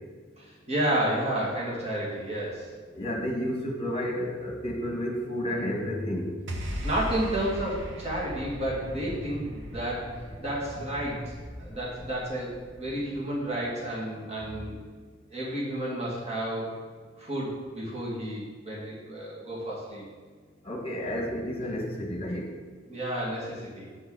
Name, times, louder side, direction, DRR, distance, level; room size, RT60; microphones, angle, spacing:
voice 1, 0.4-2.7 6.8-14.8 15.3-16.7 17.2-20.0 22.9-23.9, right 1 dB, 35° right, -5 dB, 2.4 m, -31 dB
voice 2, 2.9-6.3 20.6-22.5, equal, 30° left, 1 dB, 1.6 m, -31 dB
sound 1, 6.5-12.9, equal, 65° right, 1.2 m, -39 dB
sound 2, 7.6-13.9, equal, 15° right, 3.1 m, -44 dB
8.2 x 6.1 x 5.7 m, 1.5 s
head